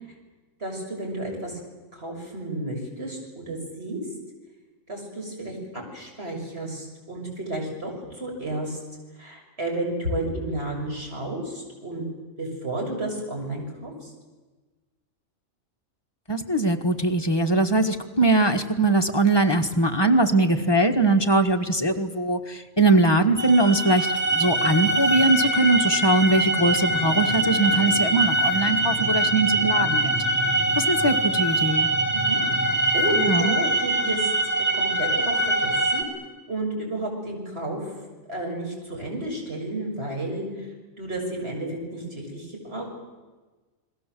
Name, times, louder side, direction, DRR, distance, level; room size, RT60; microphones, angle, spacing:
voice 1, 0.6-1.6 1.9-4.0 4.9-8.8 9.2-12.1 12.4-14.1 32.1-34.3 34.7-36.0 36.5-37.9 38.3-40.7 41.0-42.9, right 1 dB, 50° right, 0 dB, 6.9 m, -32 dB
voice 2, 16.3-30.1 30.8-31.9 33.1-33.5, right 2 dB, 20° left, 4 dB, 1.5 m, -21 dB
sound 1, 23.4-36.0, right 2 dB, 10° right, 2.8 m, -23 dB
29.5 x 21.0 x 7.7 m, 1.3 s
omnidirectional pair, 1.4 m